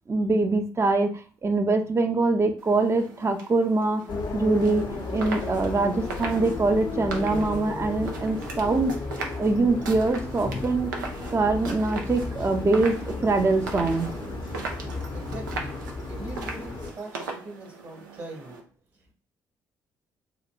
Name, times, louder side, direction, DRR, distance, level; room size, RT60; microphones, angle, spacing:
voice 1, 0.1-4.0 4.3-8.9 9.4-14.1, right 3 dB, 25° right, 5 dB, 0.5 m, -24 dB
sound 1, 2.6-18.6, right 4 dB, 90° right, 0.4 m, -39 dB
sound 2, 4.1-16.9, left 3 dB, 50° left, 0.6 m, -34 dB
voice 2, 15.1-18.7, right 2 dB, 45° right, 0 dB, 1.1 m, -42 dB
2.9 x 2.1 x 2.4 m, 0.41 s
hypercardioid pair, 45°, 10 cm